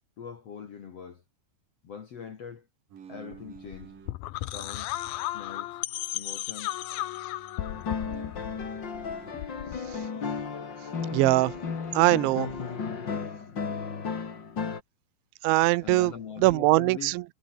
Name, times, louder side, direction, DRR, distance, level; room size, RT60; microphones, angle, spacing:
voice 1, 0.2-1.2 1.8-2.7 3.1-4.0 4.4-5.0 5.3-5.8 6.1-6.8 15.8-17.1, left 7 dB, 50° left, 2.0 m, -42 dB
Chair creaking on the floor, 2.9-4.2 4.7-6.4 6.7-9.4, right 7 dB, 50° right, 4.3 m, -52 dB
sound 1, 3.3-10.1, left 16 dB, 75° left, 2.3 m, -35 dB
sound 2, 7.6-14.8, left 5 dB, 35° left, 2.2 m, -34 dB
voice 2, 11.1-11.5 11.9-12.5 15.4-16.1 16.4-17.2, right 21 dB, 90° right, 3.1 m, -21 dB
omnidirectional pair, 5.2 m